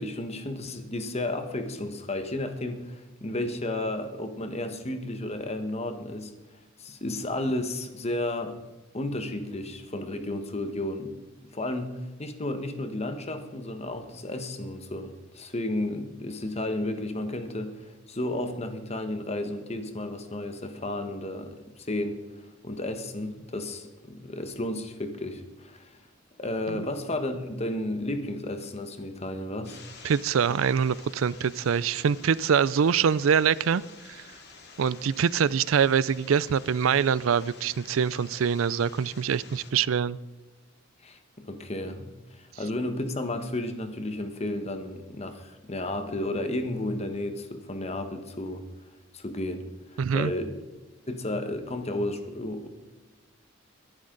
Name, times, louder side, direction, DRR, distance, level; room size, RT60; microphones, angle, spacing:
voice 1, 0.0-6.3 6.8-8.6 8.9-11.2 11.5-17.8 18.1-22.2 22.6-26.0 26.4-29.8 41.0-48.6 49.1-50.6 51.1-52.7, left 1 dB, 30° left, 7 dB, 1.3 m, -33 dB
sound 1, 29.6-39.7, left 4 dB, 55° left, 2.4 m, -49 dB
voice 2, 30.0-33.8 34.8-40.2 50.0-50.3, right 7 dB, 85° right, 20 dB, 0.4 m, -24 dB
22.0 x 11.5 x 3.9 m, 1.1 s
head